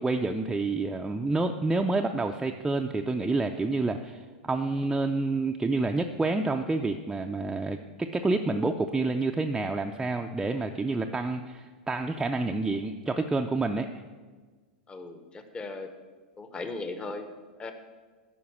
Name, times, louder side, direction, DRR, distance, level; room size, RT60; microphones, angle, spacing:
voice 1, 0.0-13.9, right 3 dB, 10° right, 3 dB, 0.4 m, -28 dB
voice 2, 14.9-15.9 16.4-17.3 17.6-17.7, left 3 dB, 20° left, 8 dB, 0.9 m, -37 dB
9.5 x 5.2 x 7.1 m, 1.4 s
hypercardioid pair, 110°, 5 cm